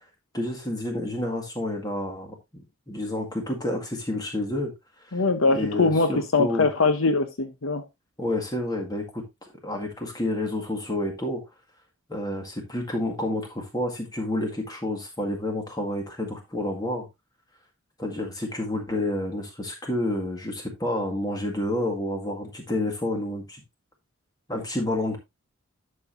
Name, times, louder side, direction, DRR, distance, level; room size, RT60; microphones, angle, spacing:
voice 1, 0.3-4.7 5.1-5.2 5.5-6.7 8.2-11.4 12.1-17.1 18.0-23.6 24.5-25.2, left 1 dB, 20° left, 1.9 m, -29 dB
voice 2, 5.1-7.8, left 3 dB, 65° left, 0.9 m, -22 dB
11.0 x 6.6 x 2.6 m
head